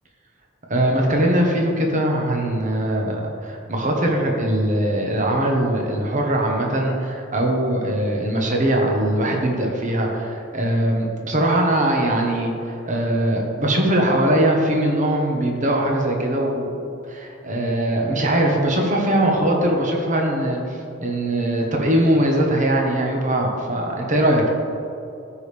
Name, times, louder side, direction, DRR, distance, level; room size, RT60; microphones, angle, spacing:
voice 1, 0.7-16.7 17.1-24.5, right 1 dB, 40° right, 0 dB, 1.2 m, -21 dB
14.5 x 5.1 x 3.5 m, 2.6 s
head